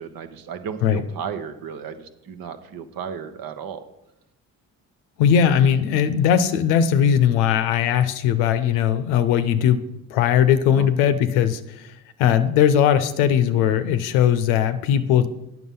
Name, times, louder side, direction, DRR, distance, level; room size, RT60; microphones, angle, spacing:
voice 1, 0.0-3.8 10.6-10.9, right 7 dB, 65° right, 9 dB, 1.0 m, -34 dB
voice 2, 5.2-9.8 10.1-11.9 12.2-15.3, left 9 dB, 90° left, 11 dB, 0.6 m, -19 dB
8.9 x 6.1 x 5.4 m, 0.89 s
hypercardioid pair, 50°, 38 cm